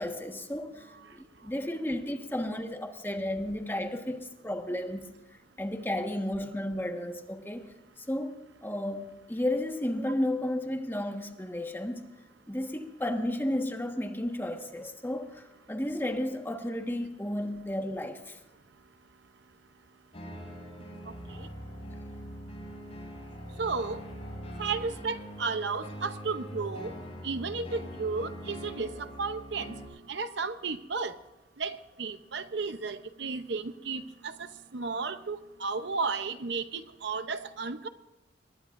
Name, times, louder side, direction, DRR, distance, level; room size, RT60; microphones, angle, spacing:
voice 1, 0.0-5.1 5.6-12.1 12.5-18.4, left 1 dB, 10° left, 1.5 m, -33 dB
sound 1, 20.1-29.9, equal, 35° left, 7.2 m, -42 dB
voice 2, 23.6-24.0 24.6-26.9 27.2-29.8 30.1-31.2 31.6-37.9, right 4 dB, 70° right, 0.8 m, -33 dB
24.5 x 21.0 x 2.6 m
head